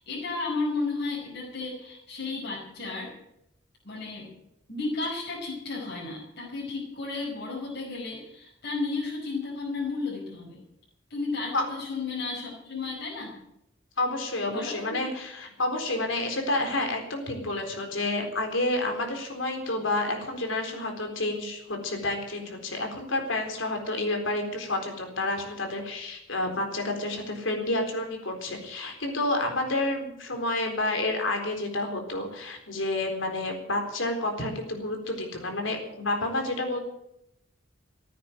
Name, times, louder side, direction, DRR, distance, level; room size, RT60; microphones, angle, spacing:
voice 1, 0.0-3.1 3.8-4.3 4.7-10.6 11.1-13.4 14.5-15.0, left 3 dB, 60° left, -4 dB, 5.3 m, -33 dB
voice 2, 14.0-36.8, left 2 dB, 75° left, 4 dB, 4.0 m, -29 dB
15.0 x 9.3 x 9.3 m, 0.81 s
head